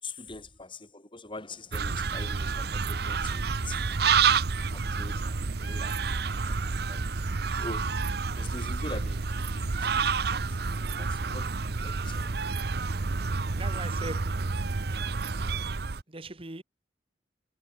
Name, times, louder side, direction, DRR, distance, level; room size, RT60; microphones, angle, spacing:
voice 1, 0.0-3.9 4.7-6.6 6.9-7.1 7.5-8.1 8.3-12.5, left 2 dB, 30° left, 5.6 m, -44 dB
sound 1, 1.7-16.0, right 5 dB, 65° right, 0.8 m, -29 dB
voice 2, 13.6-14.5 16.1-16.6, right 2 dB, 30° right, 1.6 m, -40 dB
head